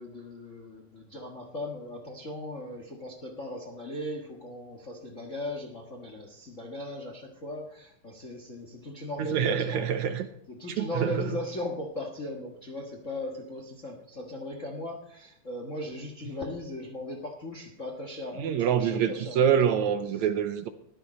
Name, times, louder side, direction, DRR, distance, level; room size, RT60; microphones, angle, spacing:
voice 1, 0.0-10.0 10.5-19.9, left 1 dB, 45° left, 1.0 m, -38 dB
voice 2, 9.2-10.3 10.7-11.3 18.4-20.7, right 8 dB, 75° right, 1.8 m, -26 dB
14.5 x 11.5 x 4.2 m
omnidirectional pair, 3.7 m